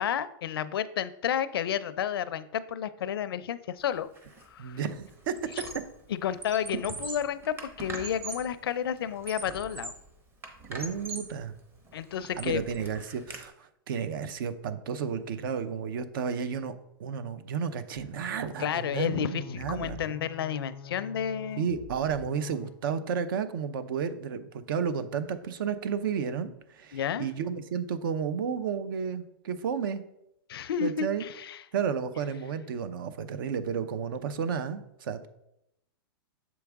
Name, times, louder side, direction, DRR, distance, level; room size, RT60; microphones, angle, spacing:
voice 1, 0.0-4.1 4.5-4.8 6.1-9.9 11.9-12.7 18.6-21.7 26.9-27.3 30.5-31.6, left 9 dB, 85° left, 14 dB, 0.5 m, -31 dB
Squeak, 4.2-4.4 4.8-6.0 6.3-8.6 9.0-10.1 10.4-11.4 11.9-13.4, right 2 dB, 20° right, 0.8 m, -42 dB
voice 2, 4.6-5.3 10.7-11.5 12.4-16.7 17.0-20.0 21.6-30.0 30.8-31.2 31.7-35.3, right 7 dB, 65° right, 12 dB, 0.6 m, -32 dB
sound 1, 18.0-22.8, left 7 dB, 20° left, 0.4 m, -46 dB
7.1 x 4.7 x 3.5 m, 0.81 s
hypercardioid pair, 145°, 12 cm